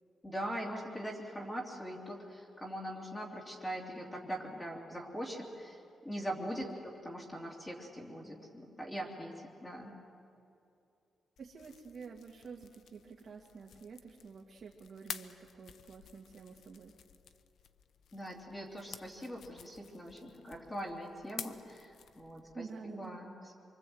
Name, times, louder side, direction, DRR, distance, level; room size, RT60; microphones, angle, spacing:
voice 1, 0.2-5.8 6.0-9.9 18.1-23.5, equal, 15° left, -2 dB, 3.1 m, -42 dB
sound 1, 11.4-22.5, left 8 dB, 65° left, 0.9 m, -51 dB
voice 2, 11.4-16.9 22.5-23.2, right 5 dB, 45° right, -2 dB, 2.0 m, -49 dB
27.0 x 24.5 x 8.0 m, 2.6 s
wide cardioid pair, 170°, 0 cm